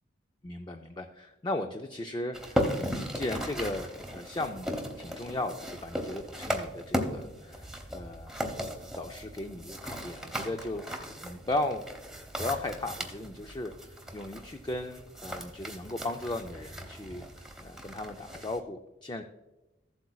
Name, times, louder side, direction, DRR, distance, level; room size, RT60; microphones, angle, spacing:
voice 1, 0.4-11.9 12.4-19.2, left 2 dB, 20° left, 5 dB, 0.4 m, -37 dB
sound 1, 2.3-18.6, equal, ahead, 0.9 m, -37 dB
15.0 x 8.0 x 2.3 m, 1.0 s
head